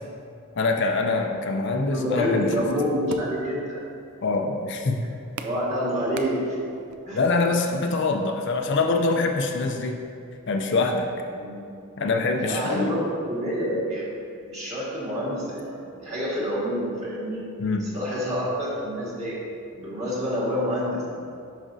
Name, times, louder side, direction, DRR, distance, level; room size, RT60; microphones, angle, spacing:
voice 1, 0.5-2.6 4.2-5.0 7.1-10.0 10.5-11.1 12.0-12.9 17.6-17.8, left 3 dB, 55° left, 3 dB, 0.5 m, -24 dB
voice 2, 1.8-3.8 5.4-6.6 7.0-7.2 11.3-11.7 12.4-14.1 14.5-17.4 17.8-19.4 19.7-21.0, equal, 30° right, -7 dB, 1.7 m, -28 dB
sound 1, 1.9-7.0, right 5 dB, 75° right, 0.4 m, -42 dB
11.0 x 5.1 x 2.6 m, 2.4 s
head